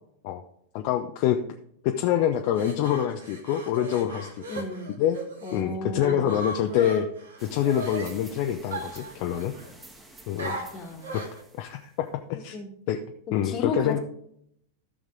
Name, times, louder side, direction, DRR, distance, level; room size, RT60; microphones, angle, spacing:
voice 1, 0.7-1.4 1.8-4.6 5.0-5.2 5.5-7.1 7.4-9.5 10.3-10.5 11.1-11.2 11.5-12.6 12.9-13.0 13.3-14.0, left 10 dB, 45° left, 5 dB, 0.7 m, -26 dB
sound 1, 2.4-5.6 6.0-8.1 8.7-9.7 10.4-11.4, right 2 dB, 70° right, 2.1 m, -38 dB
voice 2, 4.5-4.9 5.4-6.4 10.5-11.2 12.5-12.7 13.4-14.0, left 3 dB, 30° left, 5 dB, 1.7 m, -33 dB
sound 2, 7.4-12.1, right 1 dB, 10° right, 1.9 m, -50 dB
13.5 x 6.5 x 3.8 m, 0.72 s
figure-of-eight pair, 90°, 0 cm